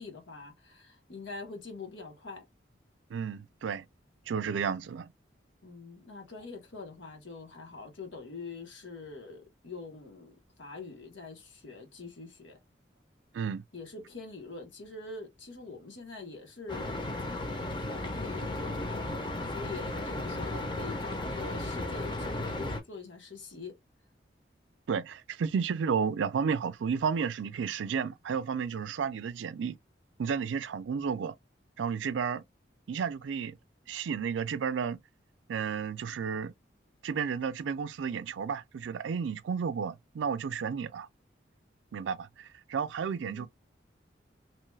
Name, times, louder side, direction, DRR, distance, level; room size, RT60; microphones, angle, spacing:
voice 1, 0.0-2.5 5.6-12.6 13.7-17.0 17.5-19.1 19.4-23.8 43.2-43.5, left 4 dB, 90° left, 1.2 m, -44 dB
voice 2, 3.1-3.9 4.3-5.1 13.3-13.6 24.9-29.8 30.2-31.4 31.8-32.4 32.9-33.6 33.9-35.0 35.5-36.5 37.0-41.1 41.9-43.5, right 6 dB, 90° right, 0.4 m, -32 dB
sound 1, 16.7-22.8, left 2 dB, 25° left, 0.6 m, -35 dB
3.0 x 2.3 x 3.1 m
head